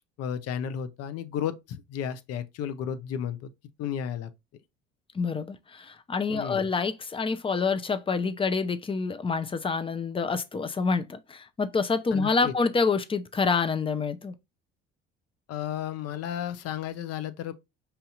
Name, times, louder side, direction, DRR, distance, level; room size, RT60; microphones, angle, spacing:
voice 1, 0.2-3.5 3.8-4.3 6.3-6.7 12.1-12.5 15.5-17.5, left 9 dB, 55° left, 0.7 m, -33 dB
voice 2, 5.1-14.3, left 4 dB, 20° left, 0.6 m, -27 dB
5.6 x 2.7 x 2.4 m
hypercardioid pair, 65°, 29 cm